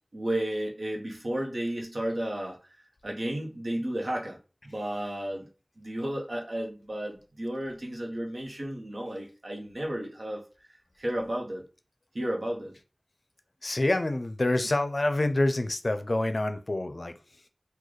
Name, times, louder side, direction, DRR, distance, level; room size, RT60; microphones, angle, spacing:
voice 1, 0.1-2.6 3.0-4.4 4.6-5.5 5.8-10.7 11.0-11.6 12.1-12.8, right 1 dB, 80° right, 0 dB, 0.9 m, -33 dB
voice 2, 13.6-17.1, left 2 dB, 65° left, 9 dB, 0.4 m, -27 dB
3.9 x 2.2 x 3.1 m, 0.33 s
wide cardioid pair, 50°, 0 cm